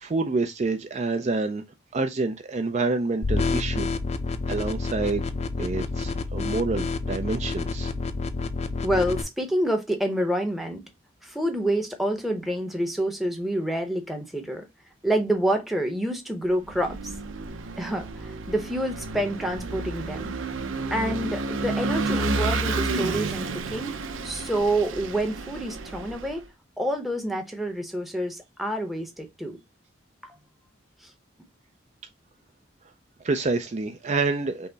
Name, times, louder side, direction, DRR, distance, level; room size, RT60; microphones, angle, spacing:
voice 1, 0.0-1.6 1.9-3.9 4.5-5.2 5.6-7.9 33.2-34.7, right 3 dB, 35° right, 0.4 m, -27 dB
sound 1, 3.2-9.2, left 3 dB, 35° left, 0.4 m, -29 dB
voice 2, 8.8-10.8 11.2-14.7 15.0-17.1 17.8-20.3 20.9-24.0 24.2-26.4 26.8-29.6 30.2-30.4 31.0-31.1, right 1 dB, ahead, 0.7 m, -27 dB
Vehicle / Engine, 16.6-26.4, right 3 dB, 80° right, 0.6 m, -31 dB
5.6 x 2.0 x 3.9 m
head